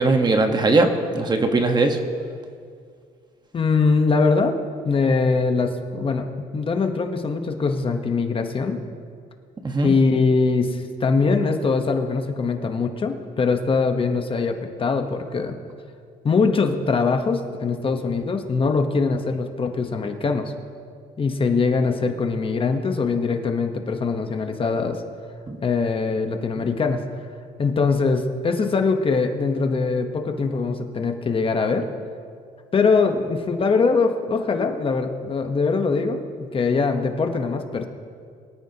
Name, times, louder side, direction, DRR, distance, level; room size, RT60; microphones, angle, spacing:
voice 1, 0.0-2.0 9.6-10.0 25.5-25.6 26.6-26.7, right 3 dB, 25° right, 5 dB, 1.3 m, -20 dB
voice 2, 3.5-4.6 4.8-6.3 6.5-8.8 9.8-15.6 16.2-20.5 21.2-25.0 25.6-27.0 27.6-31.9 32.7-37.9, left 4 dB, 30° left, 5 dB, 1.1 m, -22 dB
23.5 x 13.5 x 2.9 m, 2.2 s
cardioid pair, 110°, 17 cm